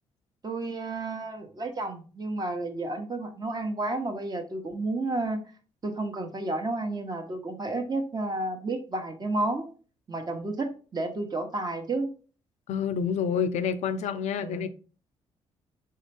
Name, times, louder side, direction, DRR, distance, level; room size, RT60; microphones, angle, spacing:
voice 1, 0.4-5.4 5.8-9.7 10.1-12.1 14.4-14.7, right 2 dB, 35° right, 1.0 m, -31 dB
voice 2, 12.7-14.7, left 7 dB, 70° left, 0.4 m, -28 dB
3.7 x 3.4 x 3.4 m
supercardioid pair, 60°, 12 cm